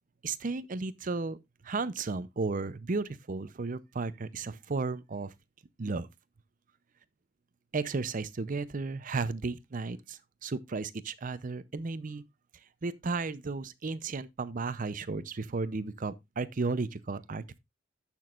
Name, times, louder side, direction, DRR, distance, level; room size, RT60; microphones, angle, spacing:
voice 1, 0.2-1.4 1.6-5.3 5.8-6.1 7.7-12.2 12.8-17.6, right 3 dB, 45° right, 0.6 m, -34 dB
14.0 x 6.1 x 2.4 m
head